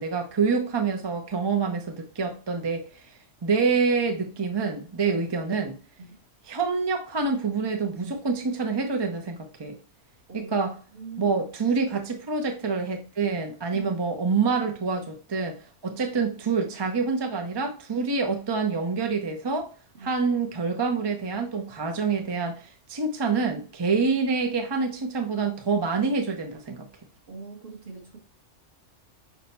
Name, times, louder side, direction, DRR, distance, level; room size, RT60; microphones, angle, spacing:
voice 1, 0.0-3.0 3.4-5.8 6.5-9.8 10.3-10.7 11.2-19.7 20.0-26.8, right 4 dB, 35° right, 0.4 m, -26 dB
voice 2, 10.3-11.4 13.7-13.9 15.9-16.0 19.9-20.2 27.3-28.2, right 4 dB, 50° right, 1.4 m, -42 dB
6.0 x 2.2 x 4.0 m
omnidirectional pair, 1.3 m